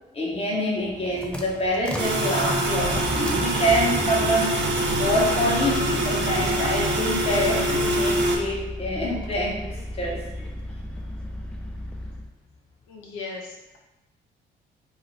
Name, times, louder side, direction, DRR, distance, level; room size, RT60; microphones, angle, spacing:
voice 1, 0.1-4.7 5.0-10.3, equal, 30° left, -2 dB, 0.7 m, -26 dB
sound 1, 0.7-12.3, left 1 dB, 5° left, 0.3 m, -35 dB
sound 2, 2.0-8.4, right 1 dB, 65° right, 0.5 m, -24 dB
voice 2, 12.9-13.8, left 4 dB, 85° left, -1 dB, 0.5 m, -37 dB
2.3 x 2.3 x 3.1 m, 1.0 s
cardioid pair, 90°, 20 cm